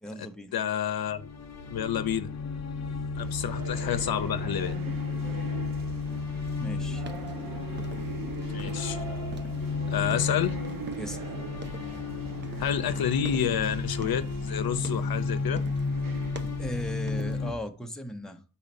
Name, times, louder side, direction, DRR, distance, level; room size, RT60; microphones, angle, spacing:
voice 1, 0.0-0.6 5.5-5.6 6.6-7.0 11.0-11.2 16.6-18.4, equal, ahead, 0.8 m, -37 dB
voice 2, 0.5-1.3 1.7-2.3 3.2-4.8 8.5-9.0 9.9-10.6 12.6-15.6, left 9 dB, 85° left, 0.7 m, -29 dB
sound 1, 1.0-17.5, left 4 dB, 50° left, 0.7 m, -33 dB
sound 2, 3.2-17.1, right 5 dB, 70° right, 1.1 m, -42 dB
sound 3, 6.5-9.0 9.3-11.3 11.5-12.0 12.4-14.4 14.8-15.2 15.6-17.5, right 3 dB, 30° right, 0.7 m, -46 dB
5.7 x 4.2 x 5.2 m
wide cardioid pair, 100°, 35 cm